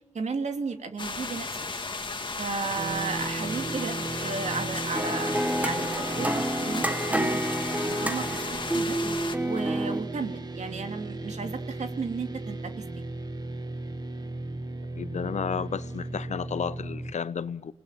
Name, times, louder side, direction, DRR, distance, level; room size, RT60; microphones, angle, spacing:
voice 1, 0.1-1.8 2.4-7.5 7.8-9.0 9.4-12.7, right 4 dB, 75° right, 2.7 m, -34 dB
sound 1, 1.0-9.4, left 3 dB, 40° left, 2.0 m, -34 dB
sound 2, 2.8-17.1, right 2 dB, 35° right, 2.0 m, -36 dB
sound 3, 4.9-10.0, right 1 dB, 10° right, 1.4 m, -29 dB
voice 2, 15.0-17.7, left 7 dB, 75° left, 0.8 m, -32 dB
28.0 x 19.0 x 9.2 m
wide cardioid pair, 80°, 12 cm